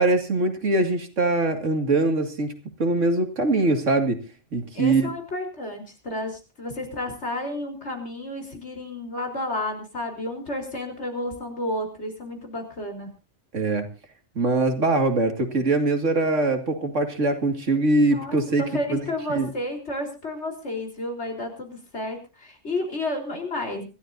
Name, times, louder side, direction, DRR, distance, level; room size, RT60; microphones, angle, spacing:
voice 1, 0.0-2.5 2.8-4.2 4.5-5.1 13.5-13.9 14.3-18.6 18.9-19.0 19.3-19.5, right 2 dB, 80° right, 6 dB, 2.6 m, -22 dB
voice 2, 4.7-13.1 18.1-23.9, left 1 dB, 65° left, 3 dB, 4.3 m, -31 dB
26.0 x 13.0 x 2.7 m, 0.32 s
omnidirectional pair, 1.3 m